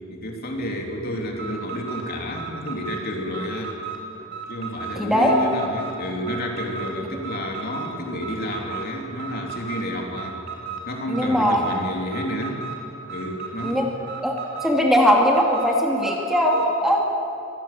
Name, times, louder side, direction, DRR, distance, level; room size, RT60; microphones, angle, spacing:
voice 1, 0.1-3.8 4.5-10.4 10.9-12.6 13.1-13.9, equal, 50° left, 1 dB, 3.3 m, -30 dB
Alarm, 1.3-16.7, right 5 dB, 55° right, 4.2 m, -36 dB
voice 2, 5.0-5.3 11.1-11.6 13.6-13.9 14.2-14.3 14.6-17.0, equal, ahead, -1 dB, 2.8 m, -19 dB
24.5 x 17.5 x 8.6 m, 2.7 s
head